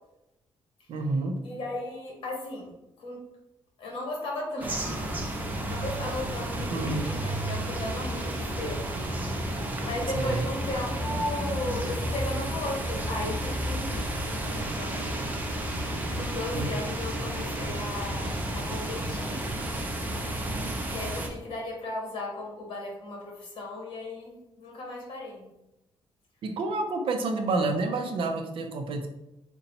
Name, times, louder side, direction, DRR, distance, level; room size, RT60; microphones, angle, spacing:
voice 1, 0.9-1.4 6.7-7.1 10.1-10.4 16.5-16.7 26.4-29.1, right 3 dB, 65° right, 5 dB, 0.6 m, -29 dB
voice 2, 1.4-3.2 3.8-5.0 5.7-8.9 9.8-15.5 15.8-19.4 20.9-25.5, left 2 dB, 60° left, -1 dB, 1.2 m, -36 dB
sound 1, 4.6-21.3, right 1 dB, 15° right, 0.5 m, -32 dB
4.0 x 2.2 x 4.0 m, 0.90 s
wide cardioid pair, 150°, 10 cm